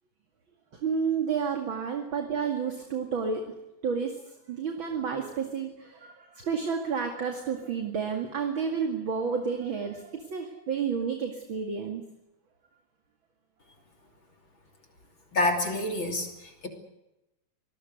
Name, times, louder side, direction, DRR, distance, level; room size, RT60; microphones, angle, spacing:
voice 1, 0.8-3.5 3.8-4.2 4.5-12.0, right 6 dB, 40° right, 4 dB, 2.7 m, -30 dB
voice 2, 15.3-16.7, left 2 dB, 40° left, 4 dB, 3.6 m, -28 dB
26.0 x 19.5 x 8.1 m, 0.93 s
omnidirectional pair, 3.6 m